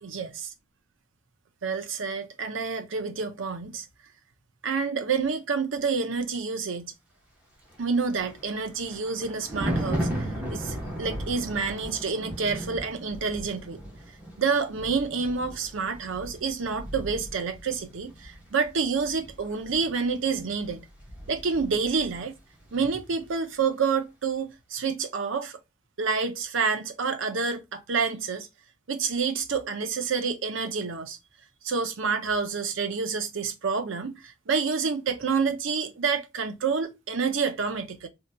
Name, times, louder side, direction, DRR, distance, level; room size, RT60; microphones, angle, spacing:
voice 1, 0.0-0.5 1.6-3.9 4.6-6.9 7.8-10.1 10.5-13.8 14.4-20.9 21.3-22.4 22.7-25.6 26.0-28.5 28.9-31.2 31.6-38.1, right 5 dB, 80° right, 0.6 m, -28 dB
Thunder, 7.7-22.3 22.6-22.9, right 1 dB, 10° right, 1.0 m, -36 dB
3.9 x 2.8 x 2.2 m
head